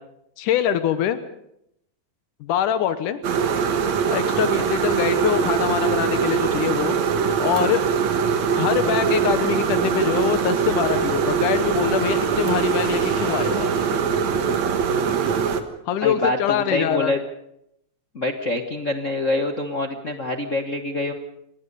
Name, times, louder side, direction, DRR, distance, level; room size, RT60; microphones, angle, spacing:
voice 1, 0.4-1.2 2.4-3.2 4.1-7.0 7.4-7.8 8.6-13.7 15.9-17.1, left 10 dB, 85° left, 11 dB, 2.5 m, -24 dB
sound 1, 3.2-15.6, right 6 dB, 65° right, 2.7 m, -22 dB
Motorcycle / Engine, 7.6-14.6, right 2 dB, 45° right, 5.0 m, -41 dB
voice 2, 16.0-17.2 18.1-21.1, left 2 dB, 60° left, 4 dB, 0.8 m, -25 dB
28.5 x 18.5 x 5.5 m, 0.77 s
omnidirectional pair, 3.6 m